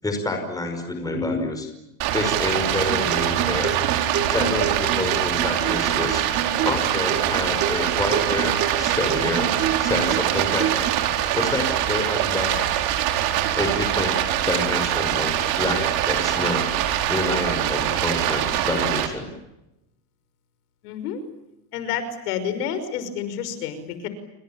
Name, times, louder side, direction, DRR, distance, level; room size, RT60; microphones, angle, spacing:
voice 1, 0.0-1.7 2.1-3.8 4.3-6.2 6.6-9.5 9.8-10.9 11.3-12.5 13.5-14.1 14.4-16.7 17.1-19.3, left 2 dB, 10° left, 4 dB, 5.5 m, -27 dB
Stream, 2.0-19.1, right 12 dB, 55° right, 4.6 m, -23 dB
Acoustic guitar, 2.9-10.9, right 8 dB, 30° right, 3.1 m, -30 dB
voice 2, 20.8-21.2 21.7-24.1, left 8 dB, 85° left, 12 dB, 5.8 m, -29 dB
29.5 x 26.0 x 7.4 m, 0.93 s
supercardioid pair, 150°, 45 cm